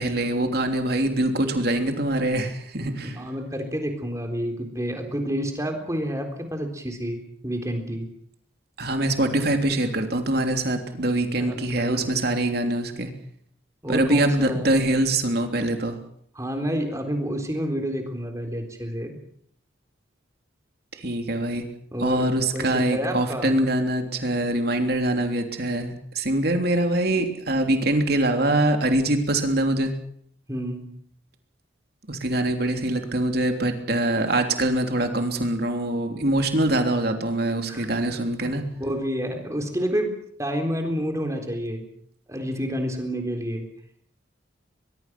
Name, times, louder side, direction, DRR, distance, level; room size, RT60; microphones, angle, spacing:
voice 1, 0.0-3.2 8.8-13.1 13.9-16.0 20.9-21.6 22.0-29.9 32.1-38.6, right 1 dB, 50° right, 5 dB, 3.3 m, -24 dB
voice 2, 3.0-8.1 11.4-12.4 13.8-14.7 16.4-19.2 21.9-22.3 22.5-23.5 30.5-30.9 37.7-37.9 38.4-40.1 40.4-41.9 42.3-43.7, equal, 15° right, 4 dB, 3.8 m, -29 dB
23.0 x 22.5 x 6.2 m, 0.63 s
head